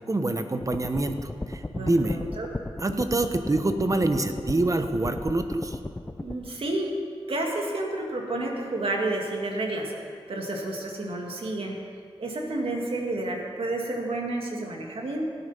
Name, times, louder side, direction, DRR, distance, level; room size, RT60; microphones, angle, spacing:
voice 1, 0.1-2.2 2.8-5.8, right 2 dB, 35° right, 8 dB, 1.1 m, -26 dB
sound 1, 0.6-6.3, left 2 dB, 20° left, 0.7 m, -35 dB
voice 2, 1.7-2.5 6.2-6.9 7.3-9.9 10.3-11.8 12.2-15.2, right 2 dB, 65° right, 0 dB, 2.1 m, -30 dB
17.0 x 8.3 x 5.7 m, 2.1 s
cardioid pair, 60°, 10 cm